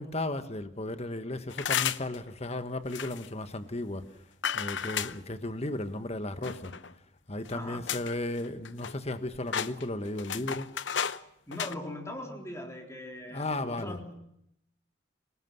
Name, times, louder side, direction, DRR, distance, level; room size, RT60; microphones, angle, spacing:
voice 1, 0.0-4.0 4.5-6.7 7.3-10.7 13.3-14.0, left 1 dB, 35° left, 1.4 m, -35 dB
sound 1, 1.5-2.2 2.9-3.3 4.4-5.2 6.4-6.9 7.5-7.6 7.9-8.2 8.4-9.2 9.5-11.2 11.5-11.7, left 8 dB, 65° left, 0.8 m, -32 dB
voice 2, 7.5-7.9 11.5-14.2, left 1 dB, 15° left, 3.9 m, -40 dB
26.0 x 19.5 x 7.8 m
head